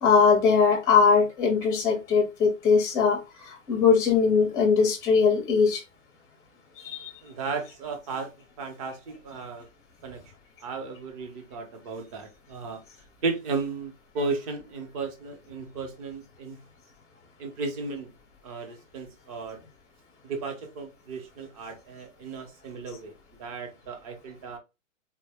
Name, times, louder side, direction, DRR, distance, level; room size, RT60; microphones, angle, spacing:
voice 1, 0.0-5.8 6.8-7.1, left 5 dB, 10° left, 0.6 m, -21 dB
voice 2, 7.2-9.7 10.0-10.2 10.6-12.8 13.2-16.6 17.4-18.1 18.4-19.6 20.2-23.1 23.4-24.6, right 4 dB, 25° right, 0.7 m, -35 dB
4.2 x 2.1 x 3.4 m
hypercardioid pair, 160°, 40 cm